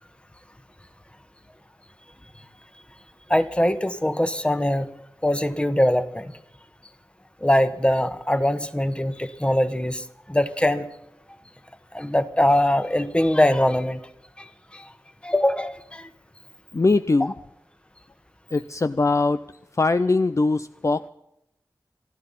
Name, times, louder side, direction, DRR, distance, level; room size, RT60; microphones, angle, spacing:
voice 1, 3.3-4.9 5.2-6.3 7.4-10.9 11.9-14.0 14.4-14.5 14.7-14.9 15.2-16.1, left 1 dB, 15° left, 10 dB, 1.4 m, -22 dB
voice 2, 16.7-17.3 18.5-19.4 19.7-21.1, left 3 dB, 40° left, 12 dB, 0.5 m, -21 dB
27.0 x 12.5 x 4.1 m, 0.83 s
cardioid pair, 50°, 8 cm